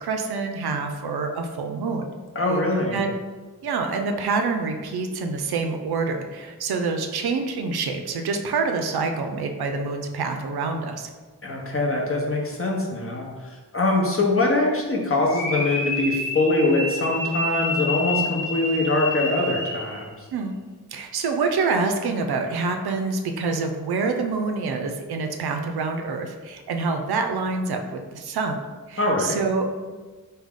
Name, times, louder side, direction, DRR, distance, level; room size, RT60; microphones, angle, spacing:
voice 1, 0.0-2.1 2.9-3.1 3.6-11.1 20.3-20.6 20.9-27.8 28.1-28.6 28.9-29.9, right 4 dB, 70° right, 5 dB, 0.5 m, -26 dB
voice 2, 2.3-3.0 11.4-20.3 29.0-29.4, left 2 dB, 35° left, -1 dB, 0.9 m, -23 dB
sound 1, 15.3-20.0, left 1 dB, 90° left, 1.1 m, -29 dB
3.5 x 2.3 x 3.6 m, 1.3 s
cardioid pair, 45°, 40 cm